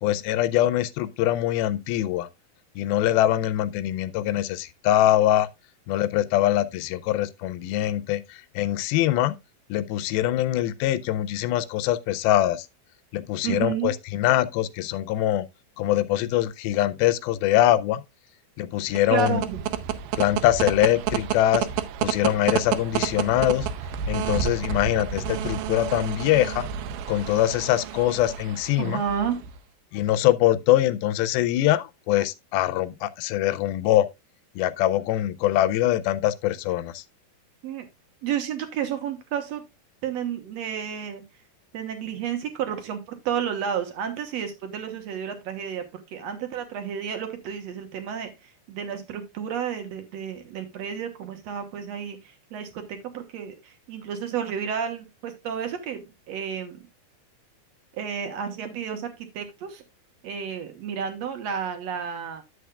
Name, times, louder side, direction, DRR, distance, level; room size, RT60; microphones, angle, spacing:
voice 1, 0.0-2.3 2.8-5.5 5.9-9.4 9.7-12.7 13.1-15.5 15.8-18.0 18.6-19.4 20.2-21.7 22.0-23.7 24.1-26.7 27.1-29.0 29.9-34.1 34.6-37.0, left 13 dB, 85° left, 2.4 m, -23 dB
voice 2, 13.4-13.9 19.1-19.6 28.8-29.4 37.6-37.8 38.2-39.6 40.0-41.2 41.7-56.9 57.9-59.8 60.2-62.4, right 8 dB, 65° right, 1.8 m, -31 dB
sound 1, 18.8-29.6, right 9 dB, 85° right, 2.5 m, -30 dB
11.0 x 7.8 x 2.3 m
omnidirectional pair, 4.3 m